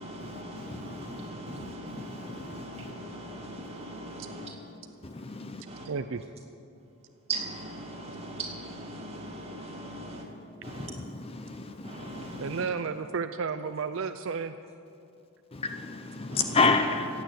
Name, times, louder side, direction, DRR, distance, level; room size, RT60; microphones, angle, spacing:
voice 1, 0.0-5.9 6.9-11.3 11.8-12.7 16.3-16.8, right 2 dB, 25° right, -1 dB, 2.2 m, -40 dB
voice 2, 5.0-5.6 10.7-10.9 11.4-12.0 15.5-17.2, left 4 dB, 25° left, 7 dB, 0.6 m, -28 dB
voice 3, 5.9-6.2 12.4-14.5, right 5 dB, 60° right, 10 dB, 0.4 m, -32 dB
15.5 x 9.0 x 8.1 m, 2.5 s
head